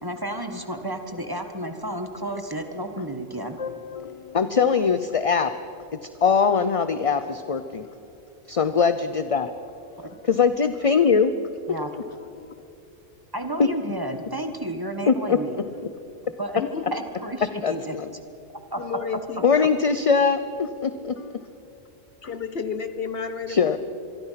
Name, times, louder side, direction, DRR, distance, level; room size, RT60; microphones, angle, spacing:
voice 1, 0.0-3.6 10.0-10.1 11.7-11.9 13.3-15.6 16.4-16.6 16.9-17.9 18.7-18.8, right 1 dB, 20° right, 6 dB, 1.6 m, -31 dB
voice 2, 3.6-5.5 5.9-7.9 8.5-9.5 10.2-11.3 12.4-12.5 13.6-13.7 15.1-15.4 17.6-18.1 19.4-21.4 23.5-23.8, left 5 dB, 35° left, 11 dB, 0.6 m, -22 dB
voice 3, 16.5-17.0 18.8-19.7 22.2-23.8, left 6 dB, 55° left, 11 dB, 1.3 m, -31 dB
26.0 x 23.0 x 5.9 m, 2.8 s
omnidirectional pair, 1.2 m